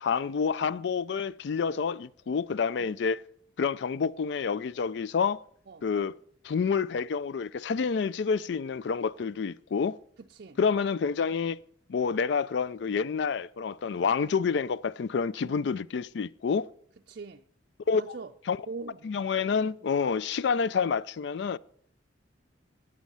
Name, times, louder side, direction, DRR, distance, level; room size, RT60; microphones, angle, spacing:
voice 1, 0.0-3.2 3.6-5.4 5.8-6.1 6.4-10.0 10.6-11.6 11.9-16.7 17.9-18.2 18.5-18.6 19.0-21.6, left 5 dB, 65° left, 0.4 m, -28 dB
voice 2, 10.2-10.6 13.9-14.0 15.4-15.6 17.1-17.4 17.9-18.3 18.7-19.1, right 4 dB, 50° right, 0.4 m, -42 dB
17.5 x 6.3 x 5.5 m
head